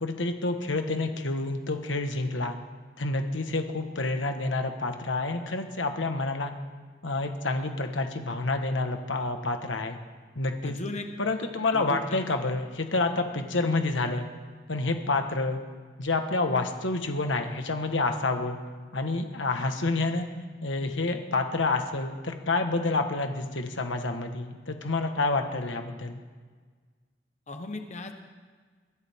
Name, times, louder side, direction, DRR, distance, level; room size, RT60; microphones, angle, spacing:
voice 1, 0.0-2.6 3.0-6.5 7.0-10.0 10.3-10.8 11.2-14.2 14.7-15.6 16.0-18.6 18.9-20.3 20.6-26.2, left 3 dB, 90° left, 5 dB, 1.4 m, -28 dB
voice 2, 10.6-11.1 11.7-12.2 27.5-28.1, left 2 dB, 40° left, 5 dB, 1.2 m, -37 dB
23.0 x 16.0 x 3.7 m, 1.5 s
head